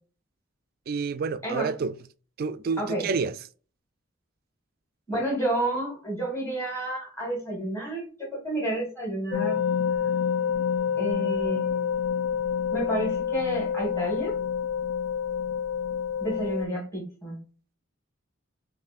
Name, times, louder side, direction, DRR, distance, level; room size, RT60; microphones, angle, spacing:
voice 1, 0.9-1.9 2.4-3.3, right 5 dB, 45° right, 0.3 m, -28 dB
voice 2, 5.1-9.6 11.0-11.9 12.7-14.3 16.2-17.4, right 1 dB, 15° left, 1.6 m, -30 dB
sound 1, 9.3-16.7, left 7 dB, 70° left, 0.5 m, -28 dB
5.1 x 2.6 x 2.5 m
head